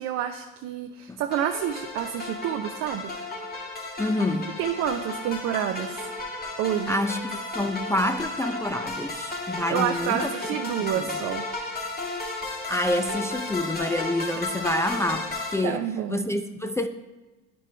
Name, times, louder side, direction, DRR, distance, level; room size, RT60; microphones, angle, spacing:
voice 1, 0.0-3.1 4.6-6.0 6.6-7.0 9.5-11.5 14.3-14.4 15.6-16.3, right 10 dB, 65° right, 5 dB, 0.6 m, -29 dB
sound 1, 1.3-15.5, left 2 dB, 30° left, 2.3 m, -33 dB
voice 2, 4.0-4.5 6.9-10.3 10.8-11.1 12.7-15.8 16.1-16.9, left 1 dB, 10° left, 8 dB, 0.4 m, -27 dB
10.0 x 5.4 x 3.3 m, 1.2 s
supercardioid pair, 80°, 30 cm